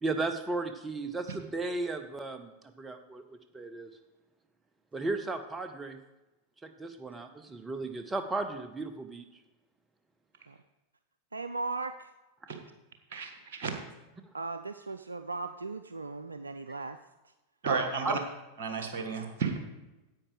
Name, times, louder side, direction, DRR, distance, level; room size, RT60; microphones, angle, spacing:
voice 1, 0.0-2.5 2.8-3.2 3.5-3.9 4.9-6.0 6.6-9.2 18.0-18.2, right 3 dB, 15° right, 9 dB, 0.7 m, -35 dB
voice 2, 11.3-12.1 14.3-17.0 18.0-18.2, right 3 dB, 80° right, 9 dB, 0.3 m, -37 dB
voice 3, 13.1-13.7 17.6-18.2 18.6-19.6, right 5 dB, 55° right, 5 dB, 1.7 m, -32 dB
9.9 x 8.6 x 5.0 m, 1.1 s
figure-of-eight pair, 90°, 0 cm